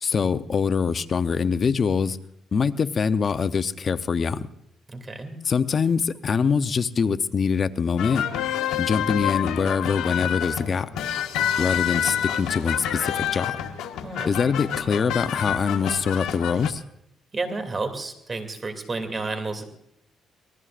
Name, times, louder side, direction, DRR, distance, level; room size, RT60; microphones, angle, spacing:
voice 1, 0.0-2.2 2.5-4.5 5.4-8.3 8.8-10.9 11.6-13.6 14.3-16.8, left 6 dB, 45° left, 11 dB, 0.7 m, -24 dB
voice 2, 4.9-5.3 14.0-14.3 17.3-19.6, right 3 dB, 30° right, 7 dB, 2.7 m, -31 dB
sound 1, 8.0-16.7, left 10 dB, 90° left, 1.1 m, -28 dB
26.0 x 19.0 x 2.5 m, 0.76 s
cardioid pair, 90°, 0 cm